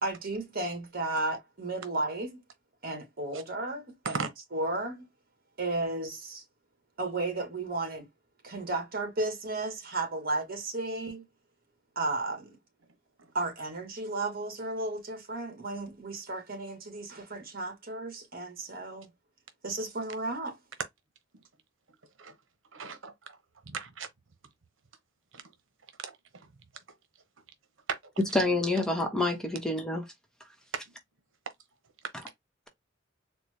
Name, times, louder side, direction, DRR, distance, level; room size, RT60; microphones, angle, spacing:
voice 1, 0.0-2.4 2.8-4.3 4.5-5.1 5.6-6.4 7.0-8.1 8.4-11.2 11.9-12.6 13.3-19.1 19.6-20.6, right 2 dB, 50° right, 1.6 m, -34 dB
voice 2, 22.7-23.4 23.6-24.1 25.3-25.4 26.0-26.5 27.9-28.0, right 5 dB, 85° right, 0.9 m, -37 dB
voice 3, 28.3-30.0, left 2 dB, 5° left, 0.9 m, -27 dB
4.3 x 2.1 x 3.2 m
head